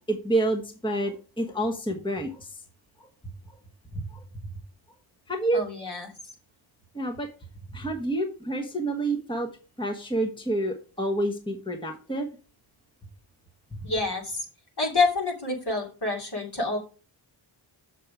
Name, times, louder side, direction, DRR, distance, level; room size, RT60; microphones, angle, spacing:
voice 1, 0.1-2.6 3.0-3.1 3.5-3.6 3.9-4.2 5.3-5.6 6.9-7.3 7.7-9.5 9.8-12.3, right 1 dB, 10° left, 3 dB, 1.2 m, -28 dB
voice 2, 5.5-6.1 13.8-14.4 14.8-16.8, left 3 dB, 50° left, 0 dB, 2.8 m, -27 dB
6.9 x 6.5 x 4.7 m, 0.35 s
wide cardioid pair, 80°, 49 cm